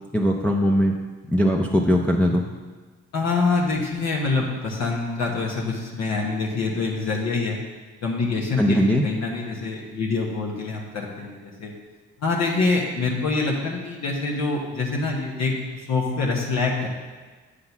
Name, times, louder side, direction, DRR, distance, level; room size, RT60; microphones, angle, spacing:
voice 1, 0.1-1.0 1.3-2.4 8.6-9.0, equal, 5° left, -1 dB, 0.5 m, -20 dB
voice 2, 3.1-7.6 8.0-11.7 12.2-16.9, left 3 dB, 60° left, -1 dB, 1.2 m, -25 dB
8.2 x 3.8 x 5.9 m, 1.3 s
cardioid pair, 90°, 30 cm